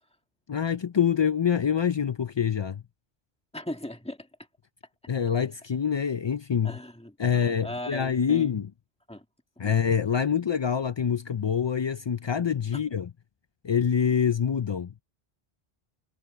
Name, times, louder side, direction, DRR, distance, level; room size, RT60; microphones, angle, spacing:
voice 1, 0.5-2.8 5.1-6.8 7.2-8.7 9.6-13.1 13.6-15.0, left 7 dB, 50° left, 0.3 m, -26 dB
voice 2, 3.5-4.3 6.6-8.5 9.1-9.2 9.6-9.8, left 1 dB, 5° left, 1.7 m, -38 dB
omnidirectional pair, 1.0 m